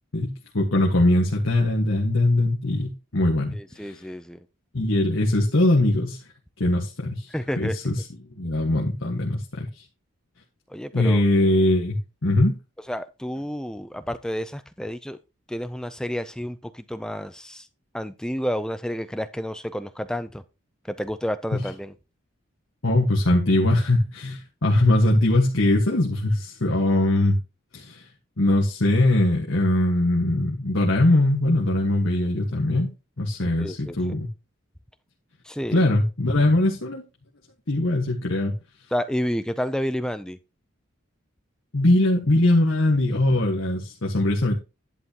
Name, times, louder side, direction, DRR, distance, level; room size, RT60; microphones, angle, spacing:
voice 1, 0.1-4.0 4.7-6.2 6.6-7.3 7.6-8.0 8.4-9.8 10.9-12.5 21.5-21.7 22.8-27.4 27.7-28.0 28.4-32.9 33.2-34.3 35.7-37.0 37.7-38.5 41.7-44.5, left 1 dB, 70° left, -1 dB, 1.5 m, -21 dB
voice 2, 3.5-4.4 7.3-7.8 10.7-11.2 12.9-15.2 15.5-17.7 17.9-20.4 20.9-21.9 33.6-34.0 35.4-35.8 38.9-40.4, equal, 5° left, 11 dB, 0.5 m, -30 dB
11.0 x 8.5 x 2.9 m, 0.29 s
head